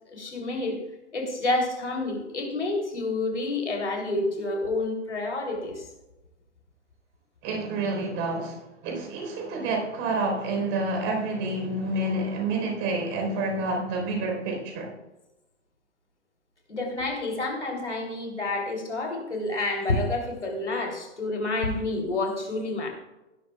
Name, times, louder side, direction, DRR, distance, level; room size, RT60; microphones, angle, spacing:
voice 1, 0.1-0.8 1.1-5.9 16.7-22.9, left 2 dB, 80° left, 3.2 m, -29 dB
voice 2, 7.4-14.9, right 2 dB, 35° right, 4.0 m, -28 dB
16.5 x 12.5 x 2.3 m
figure-of-eight pair, 105°, 35 cm